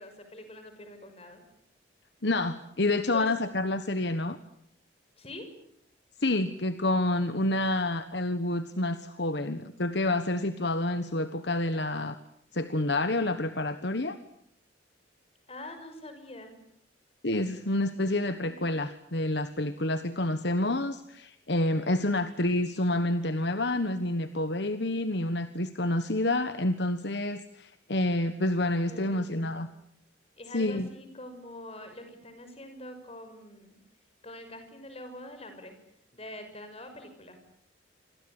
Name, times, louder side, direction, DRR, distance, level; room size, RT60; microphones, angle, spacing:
voice 1, 0.0-1.4 3.1-3.3 5.2-5.5 15.5-16.6 21.8-22.3 28.9-29.7 30.4-33.8 34.2-35.8 36.1-37.4, left 1 dB, 30° left, 7 dB, 6.2 m, -45 dB
voice 2, 2.2-4.4 6.2-12.2 12.5-14.2 17.2-29.7 30.5-30.9, left 2 dB, 60° left, 11 dB, 1.3 m, -28 dB
28.5 x 23.0 x 8.9 m, 0.71 s
head